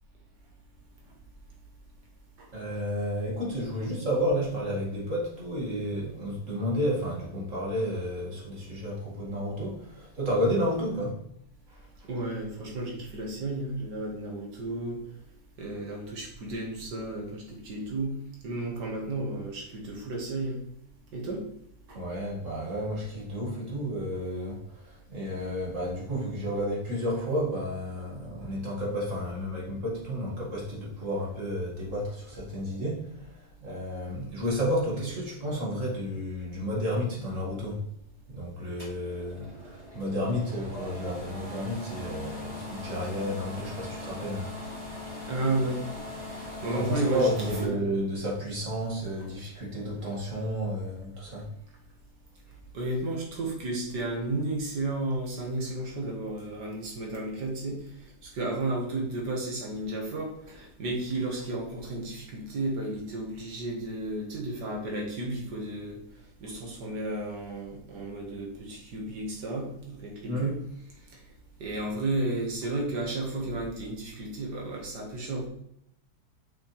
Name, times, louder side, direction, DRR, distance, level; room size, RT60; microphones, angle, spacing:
voice 1, 2.5-11.2 11.7-11.8 21.9-37.8 38.3-44.5 46.7-51.5 70.2-70.5 71.7-71.8, equal, 45° right, -3 dB, 2.4 m, -31 dB
voice 2, 12.1-15.0 15.6-18.2 18.4-20.6 21.1-21.4 21.9-22.0 45.3-45.8 46.3-47.3 47.6-47.8 52.7-66.0 66.4-70.6 71.6-75.5, right 2 dB, 75° right, -1 dB, 2.2 m, -33 dB
Stove Overhead Fan (High), 38.8-47.6, left 1 dB, 20° right, 3.0 m, -40 dB
6.5 x 5.9 x 3.3 m, 0.74 s
omnidirectional pair, 1.8 m